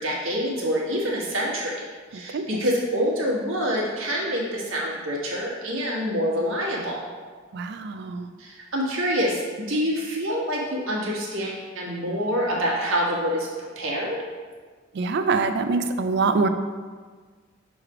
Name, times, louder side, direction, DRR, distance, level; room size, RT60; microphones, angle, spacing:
voice 1, 0.0-1.7 2.1-7.0 8.4-14.2, equal, 80° right, -3 dB, 1.4 m, -26 dB
voice 2, 2.1-2.6 7.5-8.3 14.9-16.5, right 4 dB, 55° right, 8 dB, 0.4 m, -24 dB
6.3 x 3.3 x 4.8 m, 1.5 s
head